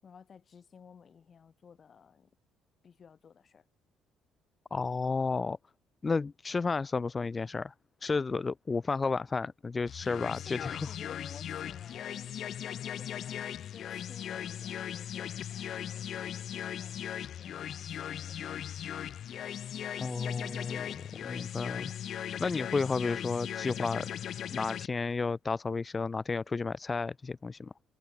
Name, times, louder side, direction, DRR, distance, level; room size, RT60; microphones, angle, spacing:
voice 1, 0.0-2.3 2.8-3.7 10.2-18.5 22.8-23.0, left 6 dB, 45° left, 7.8 m, -55 dB
voice 2, 4.7-5.6 6.0-7.7 8.0-10.8 20.0-21.0 21.2-21.9 22.4-24.1 24.5-27.7, left 4 dB, 30° left, 2.6 m, -32 dB
sound 1, 9.9-24.9, left 10 dB, 60° left, 2.1 m, -38 dB
supercardioid pair, 65°, 0 cm